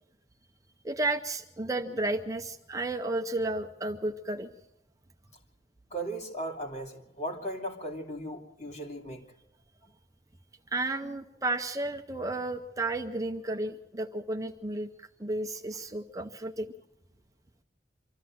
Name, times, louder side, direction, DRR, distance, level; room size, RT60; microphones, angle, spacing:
voice 1, 0.8-4.5 10.7-16.7, right 2 dB, 20° right, 4 dB, 0.7 m, -32 dB
voice 2, 5.9-9.2, right 1 dB, 40° left, 1 dB, 2.9 m, -37 dB
25.0 x 14.0 x 7.7 m, 0.91 s
head